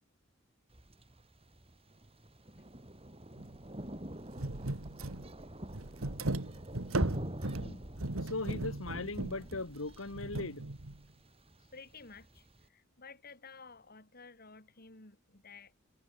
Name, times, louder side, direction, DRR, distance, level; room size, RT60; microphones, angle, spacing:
Thunder, 0.7-12.6, equal, 30° right, 4.3 m, -45 dB
sound 1, 3.4-3.6 3.8-3.9 4.3-11.0, right 2 dB, 85° right, 1.9 m, -37 dB
voice 1, 8.2-10.7 11.6-11.7, left 3 dB, 70° left, 1.9 m, -39 dB
voice 2, 11.7-15.7, left 4 dB, 45° left, 4.8 m, -53 dB
head